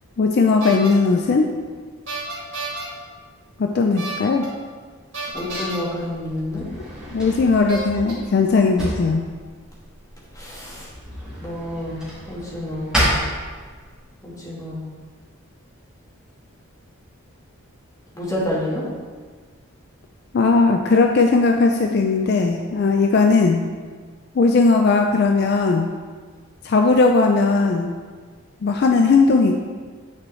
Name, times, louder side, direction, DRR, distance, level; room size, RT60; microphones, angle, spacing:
voice 1, 0.2-1.5 3.6-4.5 7.1-9.2 20.3-23.6 24.4-25.9 26.6-27.9 28.6-29.6, left 4 dB, 50° left, 3 dB, 0.3 m, -17 dB
sound 1, 0.6-0.9 2.1-2.8 4.0-4.5 5.1-5.8 6.8-6.9 7.7-8.1, right 2 dB, 60° right, 2.0 m, -30 dB
voice 2, 5.3-6.6 10.3-10.9 11.4-12.9 14.2-14.8 18.1-18.9, left 1 dB, 15° left, -6 dB, 1.4 m, -29 dB
Drawer open or close, 5.3-14.1, equal, 5° right, 1.8 m, -30 dB
8.6 x 4.6 x 3.1 m, 1.6 s
head